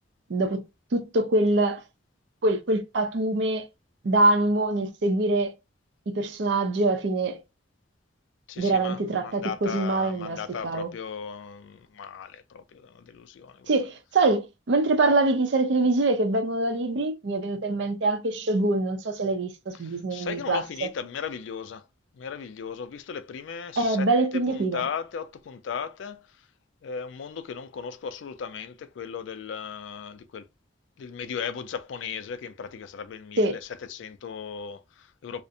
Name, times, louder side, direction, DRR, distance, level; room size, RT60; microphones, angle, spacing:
voice 1, 0.3-0.6 0.9-1.8 2.4-3.7 4.0-5.5 6.1-7.4 8.6-10.9 13.7-20.6 23.8-24.8 33.4-33.6, right 2 dB, 65° right, 0.5 m, -24 dB
voice 2, 8.5-13.9 19.7-21.9 22.1-26.5 26.8-30.5 31.0-35.4, left 6 dB, 80° left, 0.3 m, -37 dB
2.5 x 2.0 x 2.6 m
head